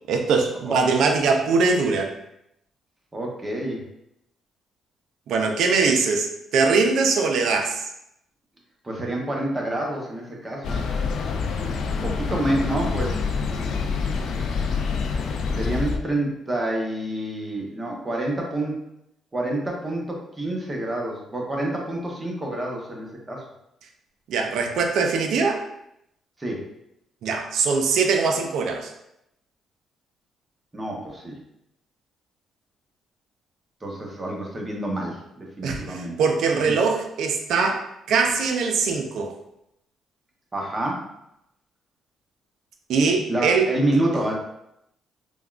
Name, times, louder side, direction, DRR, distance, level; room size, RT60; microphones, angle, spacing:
voice 1, 0.1-2.1 5.3-7.9 24.3-25.6 27.2-28.9 35.6-39.3 42.9-43.7, right 4 dB, 75° right, 3 dB, 0.4 m, -22 dB
voice 2, 3.1-3.8 8.8-10.8 12.0-13.2 15.5-18.8 19.3-23.4 26.4-26.7 30.7-31.4 33.8-36.2 36.6-36.7 40.5-41.1 43.3-44.3, right 1 dB, 25° right, -1 dB, 0.8 m, -28 dB
sound 1, 10.6-16.0, left 5 dB, 70° left, 0.3 m, -26 dB
3.4 x 2.2 x 2.4 m, 0.80 s
cardioid pair, 90°, 0 cm